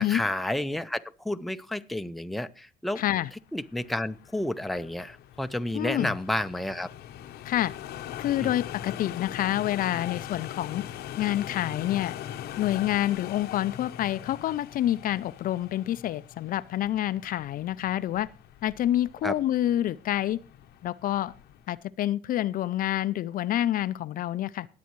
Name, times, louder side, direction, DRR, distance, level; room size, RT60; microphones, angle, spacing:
voice 1, 0.0-3.0 3.5-6.9 8.4-8.5 19.2-19.3, left 1 dB, ahead, 0.5 m, -31 dB
voice 2, 3.0-3.3 5.7-6.1 7.4-7.7 8.2-10.8 11.2-12.2 12.6-18.3 18.6-20.4 20.8-21.3 21.7-24.7, left 13 dB, 55° left, 0.4 m, -27 dB
sound 1, 3.5-21.8, left 11 dB, 70° left, 0.8 m, -42 dB
19.5 x 8.4 x 3.1 m
cardioid pair, 110°, 17 cm